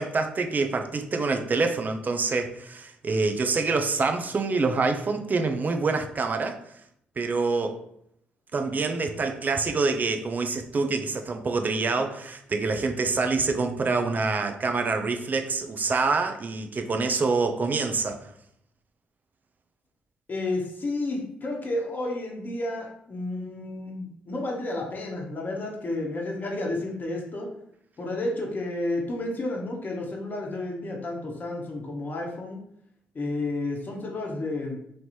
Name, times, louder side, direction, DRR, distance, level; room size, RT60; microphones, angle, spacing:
voice 1, 0.0-6.6 7.2-7.8 8.5-18.3, right 4 dB, 40° right, 6 dB, 0.6 m, -26 dB
voice 2, 20.3-27.5 28.0-32.6 33.1-34.8, left 2 dB, 40° left, -1 dB, 1.1 m, -31 dB
3.2 x 2.9 x 4.1 m, 0.72 s
hypercardioid pair, 45°, 5 cm